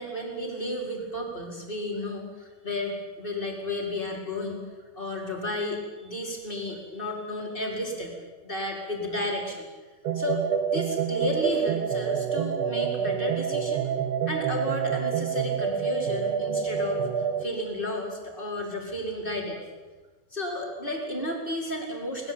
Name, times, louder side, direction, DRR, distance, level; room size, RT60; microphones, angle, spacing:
voice 1, 0.0-4.6 5.0-8.1 8.4-9.7 10.1-10.4 10.7-13.9 14.3-17.1 17.4-19.6 20.3-22.3, left 1 dB, 15° left, 0 dB, 4.7 m, -32 dB
sound 1, 10.0-17.4, right 7 dB, 60° right, 1.9 m, -27 dB
21.5 x 21.0 x 8.9 m, 1.3 s
omnidirectional pair, 4.4 m